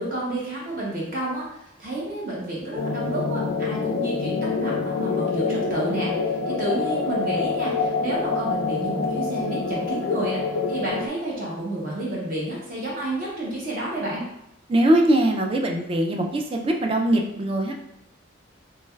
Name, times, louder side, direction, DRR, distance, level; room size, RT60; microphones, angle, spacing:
voice 1, 0.0-6.1 6.5-10.4 10.7-14.3, right 1 dB, 45° right, -5 dB, 0.7 m, -30 dB
sound 1, 2.8-11.1, left 4 dB, 70° left, 0.3 m, -26 dB
voice 2, 14.7-17.7, right 1 dB, 25° right, 2 dB, 0.3 m, -21 dB
3.2 x 3.1 x 2.3 m, 0.83 s
head